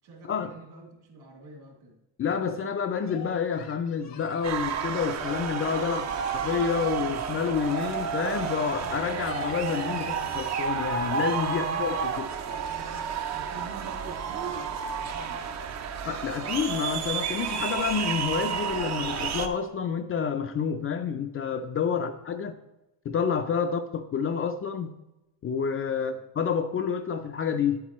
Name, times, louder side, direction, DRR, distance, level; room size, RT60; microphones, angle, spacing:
voice 1, 0.0-2.0 5.8-6.3 11.5-12.2 12.5-15.5 21.7-22.6 23.6-23.7 25.9-26.2, right 3 dB, 65° right, 2.9 m, -48 dB
voice 2, 2.2-12.3 16.1-22.5 23.1-24.9 25.4-27.8, left 6 dB, 35° left, 0.4 m, -29 dB
Singing, 3.0-6.8 7.1-8.9 9.1-11.0, left 7 dB, 80° left, 1.3 m, -49 dB
sound 1, 4.4-19.5, right 6 dB, 40° right, 0.6 m, -31 dB
9.1 x 8.5 x 3.0 m
cardioid pair, 155°, 41 cm